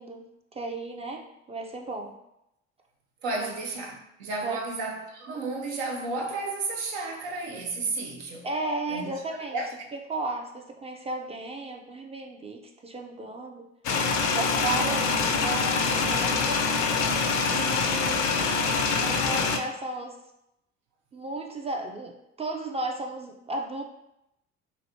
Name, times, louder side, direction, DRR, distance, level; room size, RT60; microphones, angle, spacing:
voice 1, 0.0-2.1 3.4-3.5 4.4-4.6 8.4-9.6 10.1-13.7 14.3-16.7 17.5-20.2 21.1-23.8, right 2 dB, 20° right, 0.4 m, -34 dB
voice 2, 3.2-8.5 8.9-9.7, right 3 dB, 80° right, 0.6 m, -33 dB
sound 1, 13.8-19.6, left 4 dB, 60° left, 0.5 m, -25 dB
3.1 x 2.5 x 2.7 m
hypercardioid pair, 55°, 33 cm